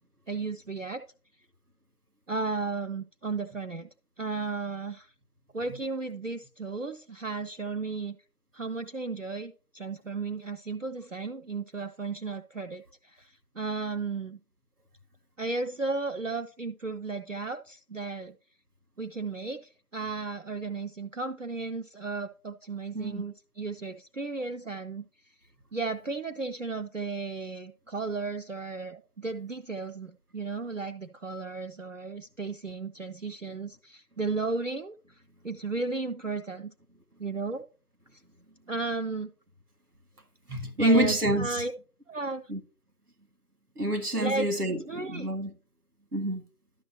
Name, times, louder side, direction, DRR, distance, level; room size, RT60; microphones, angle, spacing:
voice 1, 0.3-1.0 2.3-3.9 4.2-5.1 5.5-8.2 8.5-14.4 15.4-18.4 19.0-25.3 25.7-36.7 37.2-37.6 38.1-38.2 38.7-39.3 40.8-41.7 42.1-42.4 44.2-45.3, right 3 dB, 60° right, 0.5 m, -34 dB
voice 2, 40.5-41.6 42.5-42.6 43.8-45.5 46.1-46.4, right 1 dB, 90° right, 1.9 m, -27 dB
12.0 x 6.2 x 2.7 m
figure-of-eight pair, 180°, 45 cm